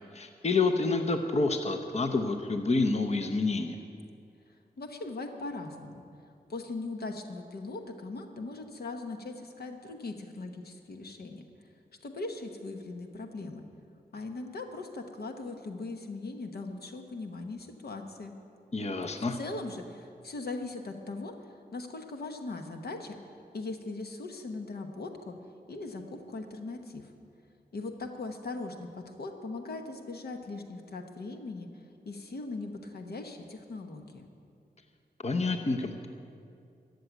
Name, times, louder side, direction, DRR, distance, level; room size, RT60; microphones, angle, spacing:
voice 1, 0.1-3.8 18.7-19.4 35.2-36.1, left 3 dB, 45° left, 6 dB, 0.8 m, -28 dB
voice 2, 4.8-6.0 6.5-11.4 12.0-13.6 14.1-18.3 19.3-21.3 21.7-23.2 23.5-25.3 25.7-27.1 27.7-31.7 32.0-34.2, left 3 dB, 80° left, 5 dB, 1.1 m, -39 dB
14.0 x 6.6 x 9.3 m, 2.4 s
wide cardioid pair, 70°, 16 cm